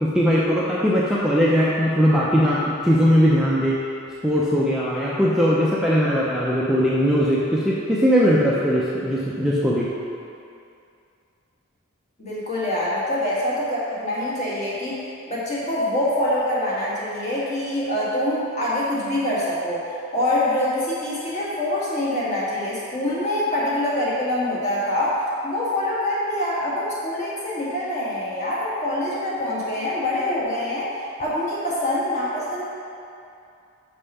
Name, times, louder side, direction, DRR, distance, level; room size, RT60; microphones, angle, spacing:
voice 1, 0.0-3.8 4.2-9.9, equal, 5° right, -8 dB, 0.6 m, -20 dB
voice 2, 12.2-19.9 20.1-32.6, left 1 dB, 35° left, -7 dB, 1.7 m, -25 dB
5.5 x 5.4 x 5.5 m, 2.5 s
head